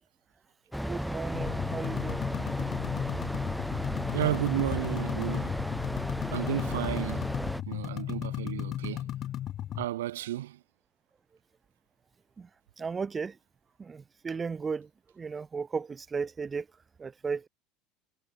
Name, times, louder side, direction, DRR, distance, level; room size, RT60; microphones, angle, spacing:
sound 1, 0.7-7.6, equal, ahead, 0.5 m, -34 dB
voice 1, 0.8-2.2 12.4-12.5 12.8-13.4 13.8-14.9 15.2-16.7 17.0-17.5, right 5 dB, 25° right, 1.2 m, -35 dB
sound 2, 1.3-9.8, left 12 dB, 50° left, 0.5 m, -35 dB
voice 2, 4.1-5.6 6.3-7.3 7.7-9.1 9.8-10.6, right 14 dB, 80° right, 0.5 m, -32 dB
hypercardioid pair, 80°, 0 cm